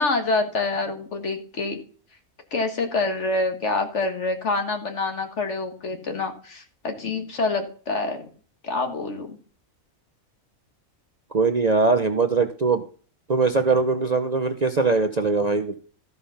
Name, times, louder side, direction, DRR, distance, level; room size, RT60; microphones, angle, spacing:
voice 1, 0.0-1.8 2.5-8.3 8.6-9.4, left 3 dB, 60° left, 6 dB, 1.9 m, -26 dB
voice 2, 11.3-12.8 13.3-15.8, right 4 dB, 40° right, 6 dB, 0.7 m, -21 dB
13.5 x 5.3 x 5.6 m, 0.41 s
omnidirectional pair, 1.4 m